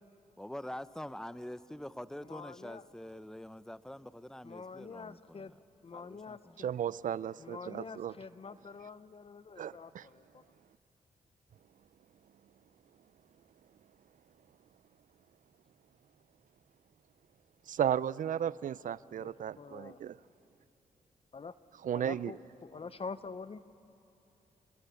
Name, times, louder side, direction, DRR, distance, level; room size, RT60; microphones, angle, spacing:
voice 1, 0.4-5.6 5.9-6.6, left 1 dB, 5° left, 15 dB, 0.7 m, -45 dB
voice 2, 2.2-2.8 4.4-5.5 5.8-6.4 7.4-10.4 19.2-20.0 21.3-21.6 22.0-23.6, left 4 dB, 40° left, 14 dB, 0.7 m, -46 dB
voice 3, 6.6-8.1 9.6-10.1 17.7-20.2 21.8-22.3, right 9 dB, 65° right, 19 dB, 0.5 m, -34 dB
28.0 x 21.5 x 8.3 m, 2.9 s
cardioid pair, 60°, 14 cm